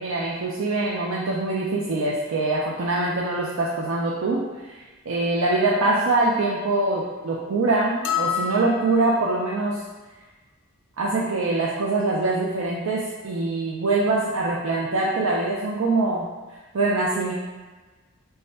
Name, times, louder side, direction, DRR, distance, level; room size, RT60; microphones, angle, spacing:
voice 1, 0.0-4.7 5.1-9.8 11.0-16.3 16.7-17.3, right 2 dB, 80° right, -4 dB, 0.4 m, -24 dB
sound 1, 8.0-9.4, left 7 dB, 60° left, 0.3 m, -28 dB
3.2 x 2.3 x 4.1 m, 1.3 s
head